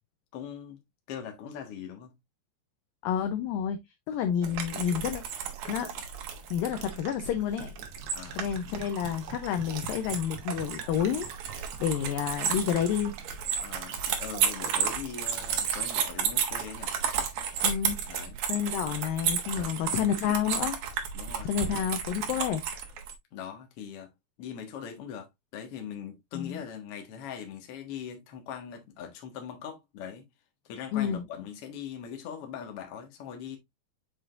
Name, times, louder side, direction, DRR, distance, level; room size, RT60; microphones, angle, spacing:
voice 1, 0.3-0.8 1.1-2.1 6.8-7.0 8.1-8.4 13.6-16.9 18.1-18.4 19.5-20.2 21.1-21.5 23.3-24.1 24.4-30.3 30.6-33.6, left 8 dB, 60° left, 1.6 m, -41 dB
voice 2, 3.0-3.8 4.1-5.2 5.7-5.9 6.5-7.7 8.4-13.2 17.6-18.0 18.5-20.8 21.4-22.6 26.3-26.6 30.9-31.2, left 9 dB, 80° left, 2.0 m, -29 dB
sound 1, 4.4-23.1, right 7 dB, 65° right, 2.5 m, -33 dB
sound 2, 7.0-14.9, right 8 dB, 85° right, 3.2 m, -47 dB
7.9 x 5.0 x 2.4 m
omnidirectional pair, 4.8 m